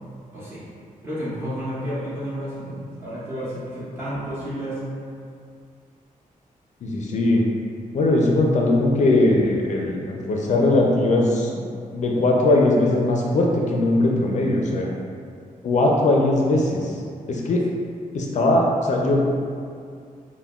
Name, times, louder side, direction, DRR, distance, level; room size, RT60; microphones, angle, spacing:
voice 1, 1.0-4.8, equal, 15° right, -12 dB, 1.4 m, -31 dB
voice 2, 6.8-7.4 7.9-11.5 11.9-14.9 15.6-17.0 17.3-17.6 18.1-19.2, left 2 dB, 55° left, -1 dB, 0.4 m, -20 dB
5.6 x 2.1 x 2.3 m, 2.3 s
cardioid pair, 110°, 14 cm